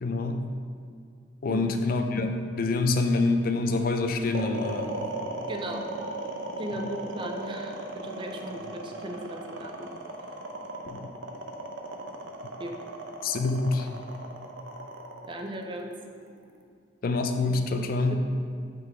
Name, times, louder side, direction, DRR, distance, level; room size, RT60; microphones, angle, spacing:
voice 1, 0.0-0.5 1.4-5.1 10.9-11.1 13.2-13.9 17.0-18.2, left 3 dB, 45° left, 6 dB, 0.4 m, -26 dB
voice 2, 1.5-1.8 5.5-6.0 6.6-9.9 12.6-12.8 15.3-15.9 18.1-18.2, right 1 dB, 25° right, 3 dB, 0.4 m, -37 dB
sound 1, 4.3-16.6, right 2 dB, 70° right, 0.6 m, -36 dB
5.6 x 3.8 x 4.8 m, 2.3 s
head